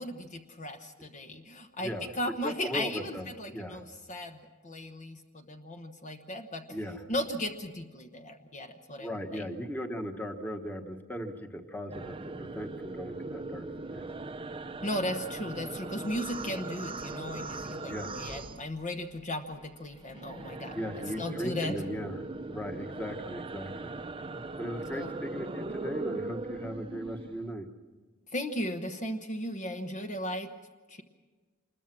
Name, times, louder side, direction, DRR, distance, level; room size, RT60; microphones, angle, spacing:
voice 1, 0.0-4.4 4.6-6.8 7.1-9.4 14.8-21.8 24.9-25.1 28.3-30.5 30.9-31.0, left 1 dB, 40° left, 5 dB, 1.1 m, -36 dB
voice 2, 1.8-2.1 2.4-3.3 3.5-3.8 6.7-7.0 9.0-13.6 13.9-14.1 17.9-18.1 20.7-22.2 22.5-23.9 24.6-27.7, equal, 10° left, 5 dB, 1.4 m, -38 dB
sound 1, 11.9-19.2 19.5-27.5, right 3 dB, 25° right, 0.7 m, -39 dB
26.5 x 21.0 x 6.1 m, 1.4 s
head